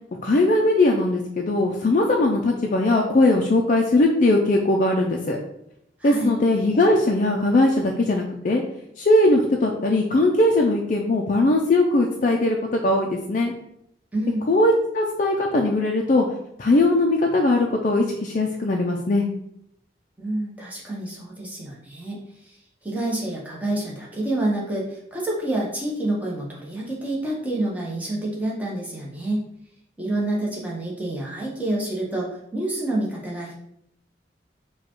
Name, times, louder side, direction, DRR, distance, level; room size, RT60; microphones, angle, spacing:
voice 1, 0.2-5.4 6.0-8.6 9.0-13.5 14.5-16.3 16.6-19.2, left 2 dB, 45° left, 1 dB, 0.4 m, -20 dB
voice 2, 6.0-6.3 14.1-14.5 20.2-22.2 22.4-22.6 22.8-29.4 30.0-33.5, right 1 dB, 10° right, -4 dB, 1.0 m, -28 dB
4.9 x 2.3 x 4.4 m, 0.76 s
head